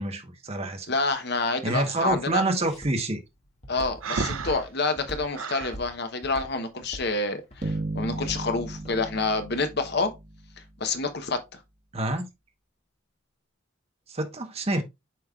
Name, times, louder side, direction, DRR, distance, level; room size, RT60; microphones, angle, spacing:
voice 1, 0.0-0.9 1.6-3.2 11.9-12.3 14.1-14.8, right 2 dB, 30° right, 1.1 m, -27 dB
voice 2, 0.9-2.4 3.7-10.1 10.8-11.4, left 3 dB, 50° left, 1.0 m, -28 dB
Walk footsteps, 0.9-9.0, equal, 30° left, 1.8 m, -43 dB
Breathing, 4.0-5.8, right 5 dB, 75° right, 0.6 m, -32 dB
Bass guitar, 7.6-10.7, right 2 dB, 50° right, 1.4 m, -35 dB
7.6 x 5.3 x 2.4 m
head